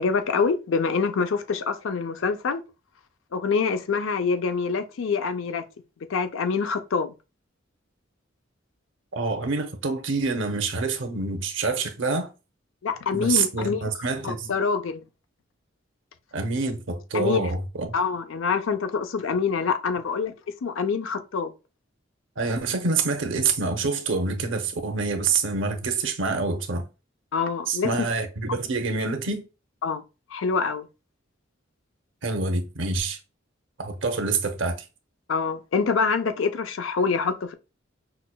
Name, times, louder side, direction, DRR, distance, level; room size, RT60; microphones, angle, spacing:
voice 1, 0.0-2.6 3.3-5.6 6.1-7.1 12.8-13.8 14.2-15.0 17.1-17.5 17.9-20.3 20.6-21.5 27.3-28.0 29.8-30.0 30.3-30.9 35.3-37.5, left 5 dB, 80° left, 0.5 m, -25 dB
voice 2, 9.1-12.3 13.1-14.5 16.3-17.9 22.4-26.9 27.7-29.5 32.2-33.2 33.8-34.8, right 4 dB, 70° right, 0.7 m, -26 dB
5.7 x 2.2 x 2.3 m
head